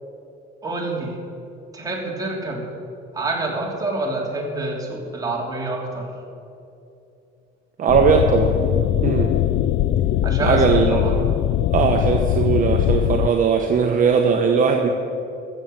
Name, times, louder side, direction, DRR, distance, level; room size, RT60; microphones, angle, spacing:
voice 1, 0.6-1.2 1.7-2.6 3.1-6.1 10.2-11.1, right 2 dB, 20° right, -2 dB, 3.0 m, -27 dB
voice 2, 7.8-8.5 9.0-9.4 10.4-11.0 11.7-14.9, right 6 dB, 45° right, 3 dB, 1.1 m, -19 dB
sound 1, 7.9-13.3, left 12 dB, 60° left, 0.4 m, -21 dB
14.0 x 7.4 x 7.7 m, 2.7 s
cardioid pair, 110°, 20 cm